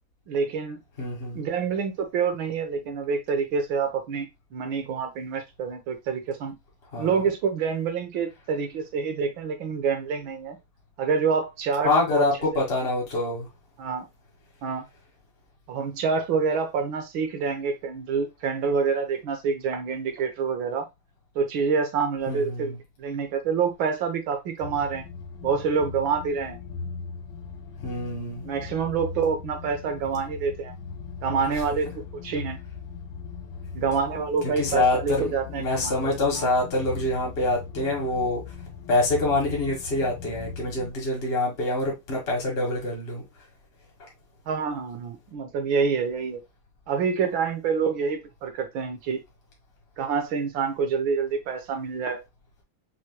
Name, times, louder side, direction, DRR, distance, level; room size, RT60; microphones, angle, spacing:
voice 1, 0.3-0.8 1.3-6.6 7.0-10.6 11.0-12.3 13.8-14.1 14.6-14.9 15.7-20.9 21.3-25.1 25.4-26.6 28.4-30.7 31.2-32.6 33.7-36.5 44.5-46.4 46.9-49.2 50.0-52.2, right 5 dB, 70° right, 1.7 m, -27 dB
voice 2, 1.0-1.4 6.9-7.2 11.8-13.5 22.3-22.8 27.8-28.4 31.5-31.6 34.4-38.4 38.9-43.2 44.0-44.1, left 2 dB, 30° left, 1.9 m, -26 dB
sound 1, 24.6-40.9, left 5 dB, 70° left, 1.5 m, -39 dB
6.1 x 3.2 x 2.2 m
omnidirectional pair, 2.4 m